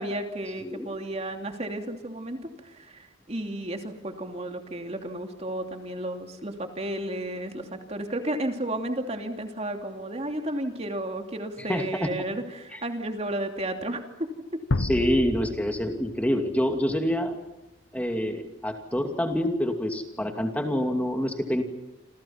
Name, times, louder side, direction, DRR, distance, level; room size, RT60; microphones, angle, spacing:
voice 1, 0.0-14.0, right 1 dB, 35° right, 4 dB, 2.9 m, -33 dB
voice 2, 0.6-1.0 11.7-12.1 12.7-12.8 14.8-17.4 17.9-21.6, equal, 5° left, 4 dB, 2.5 m, -27 dB
sound 1, 14.7-17.1, left 2 dB, 80° left, 1.0 m, -31 dB
28.5 x 28.0 x 5.8 m, 0.96 s
head